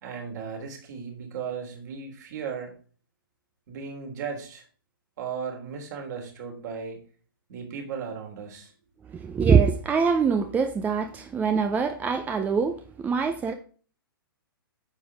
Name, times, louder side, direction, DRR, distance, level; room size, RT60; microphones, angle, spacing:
voice 1, 0.0-2.7 3.7-4.6 5.2-7.0 7.5-8.7, right 6 dB, 50° right, 3.5 m, -36 dB
voice 2, 9.1-13.5, right 6 dB, 15° right, 0.6 m, -24 dB
9.9 x 7.0 x 3.5 m
hypercardioid pair, 125°, 12 cm